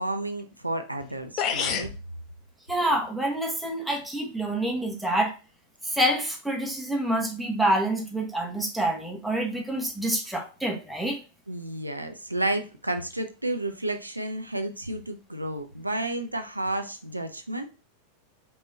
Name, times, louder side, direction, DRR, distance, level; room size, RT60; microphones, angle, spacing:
voice 1, 0.0-1.9 11.5-17.7, right 1 dB, 85° right, 6 dB, 0.5 m, -31 dB
sound 1, 1.0-1.1 1.4-2.0, left 7 dB, 35° left, 0.5 m, -27 dB
voice 2, 2.7-5.3 5.8-11.2, right 1 dB, ahead, 0 dB, 1.2 m, -27 dB
5.3 x 3.0 x 3.3 m, 0.32 s
figure-of-eight pair, 90°, 0 cm